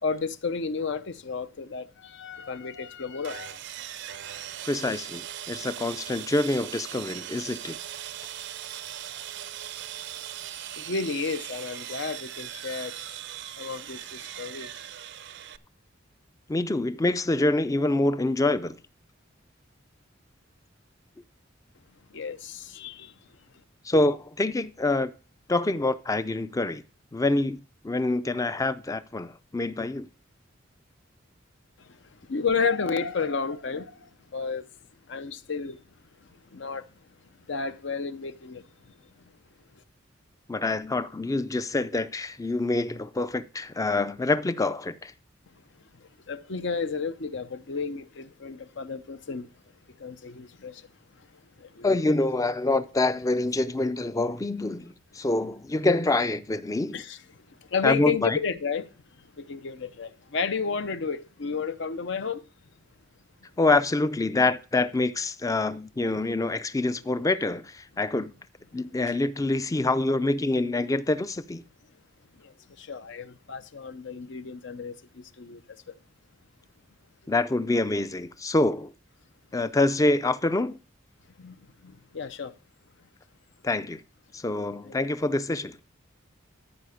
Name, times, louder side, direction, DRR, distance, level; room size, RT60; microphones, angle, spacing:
voice 1, 0.0-3.6 10.8-13.2 13.6-14.8 22.1-23.1 31.8-34.7 35.1-35.8 36.2-36.9 37.5-38.9 45.5-49.5 50.0-50.9 51.2-52.3 56.9-62.4 72.3-75.6 75.9-76.0 81.4-82.5 84.8-85.0, left 5 dB, 65° left, 0.7 m, -32 dB
Sawing, 3.2-15.6, right 11 dB, 60° right, 0.5 m, -39 dB
voice 2, 4.6-7.8 16.5-18.8 23.9-25.1 25.5-26.8 27.1-27.6 27.8-30.1 40.5-45.1 51.8-57.0 57.8-58.4 63.6-68.3 68.7-71.6 77.3-78.9 79.5-80.8 83.6-84.0 84.3-85.8, left 2 dB, 15° left, 0.4 m, -26 dB
14.0 x 4.9 x 5.0 m
head